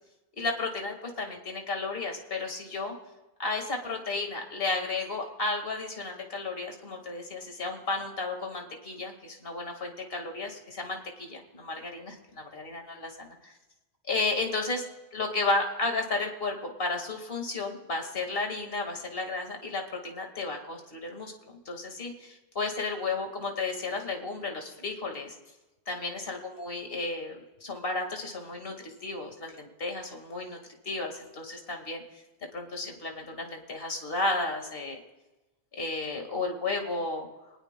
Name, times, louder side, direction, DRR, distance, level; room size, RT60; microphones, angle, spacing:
voice 1, 0.4-3.0 3.4-13.5 14.1-14.9 15.1-25.3 25.9-30.6 30.8-32.0 32.5-35.0 35.8-37.3, left 3 dB, 65° left, 3 dB, 2.1 m, -33 dB
24.0 x 19.0 x 2.2 m, 1.1 s
omnidirectional pair, 1.0 m